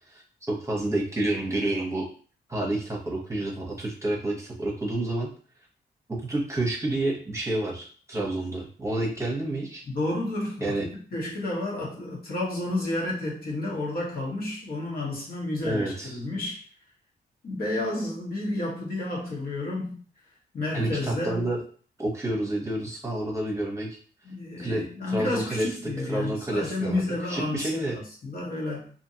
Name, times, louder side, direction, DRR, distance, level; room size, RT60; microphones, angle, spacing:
voice 1, 0.5-2.1 2.5-5.3 6.1-9.8 10.6-10.8 15.6-16.1 20.7-21.6 22.0-24.0 24.6-25.7 26.1-27.0 27.3-28.0, right 1 dB, 15° right, -2 dB, 1.0 m, -29 dB
voice 2, 9.8-16.6 17.4-20.0 20.5-21.5 24.2-28.9, left 2 dB, 60° left, -4 dB, 1.3 m, -31 dB
2.7 x 2.5 x 2.7 m, 0.42 s
cardioid pair, 65°, 18 cm